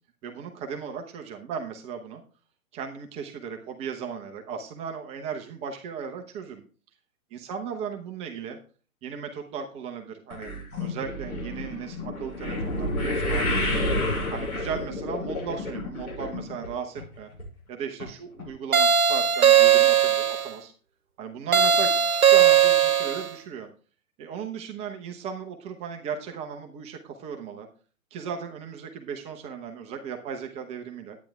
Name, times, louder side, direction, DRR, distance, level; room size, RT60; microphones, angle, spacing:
voice 1, 0.2-2.2 2.7-6.6 7.3-8.6 9.0-10.5 10.8-13.8 14.3-17.3 17.7-20.7 21.2-23.7 24.2-27.7 28.1-31.2, right 6 dB, 15° right, 4 dB, 0.7 m, -36 dB
sound 1, 10.3-16.7 17.0-17.4 18.0-18.1 18.4-18.5, left 1 dB, 85° left, 6.4 m, -29 dB
sound 2, 18.7-20.5 21.5-23.3, right 8 dB, 75° right, 0.9 m, -18 dB
10.5 x 9.3 x 3.5 m, 0.37 s
figure-of-eight pair, 120°, 43 cm